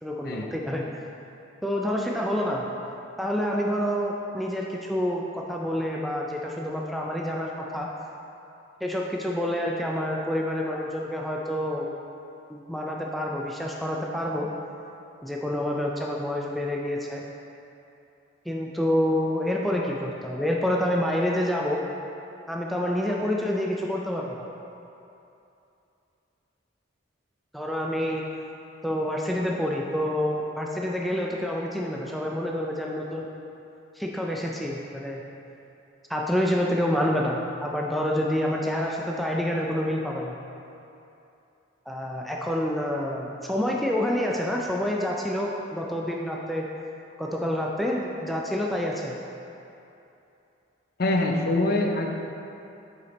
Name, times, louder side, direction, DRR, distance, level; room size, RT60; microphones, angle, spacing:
voice 1, 0.0-0.8 1.6-2.7 3.2-7.9 8.8-11.9 12.5-14.5 15.2-17.2 18.5-21.8 22.5-24.5 27.5-28.2 28.8-33.3 34.0-35.2 36.1-40.3 41.9-46.7 47.2-49.2, left 1 dB, ahead, -2 dB, 0.3 m, -28 dB
voice 2, 51.0-52.1, left 2 dB, 50° left, 2 dB, 0.5 m, -24 dB
6.8 x 5.0 x 4.1 m, 2.8 s
head